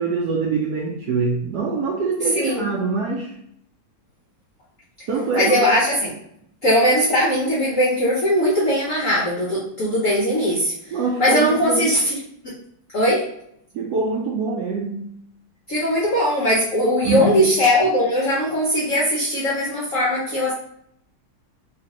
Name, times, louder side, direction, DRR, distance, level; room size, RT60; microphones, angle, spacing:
voice 1, 0.0-3.3 5.1-5.7 10.9-11.9 13.7-15.0 17.0-17.3, right 4 dB, 75° right, -3 dB, 0.9 m, -24 dB
voice 2, 2.3-2.7 5.3-6.1 6.6-10.7 11.2-12.2 12.4-12.6 12.9-13.2 15.7-20.5, equal, 65° left, -6 dB, 0.8 m, -20 dB
3.3 x 3.0 x 2.8 m, 0.72 s
omnidirectional pair, 2.2 m